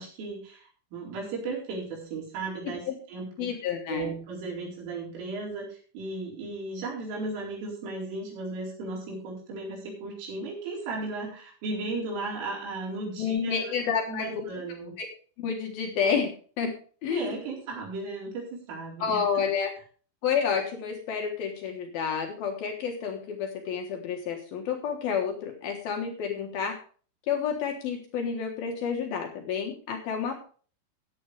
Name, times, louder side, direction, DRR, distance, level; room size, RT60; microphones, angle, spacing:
voice 1, 0.0-3.5 3.9-14.9 17.1-19.4, right 3 dB, 85° right, -2 dB, 6.9 m, -36 dB
voice 2, 3.4-4.1 13.2-14.3 15.0-15.1 15.4-16.7 17.0-17.4 19.0-19.7 20.2-26.8 27.3-30.3, left 6 dB, 65° left, 3 dB, 2.7 m, -30 dB
14.5 x 9.4 x 3.4 m, 0.41 s
omnidirectional pair, 5.6 m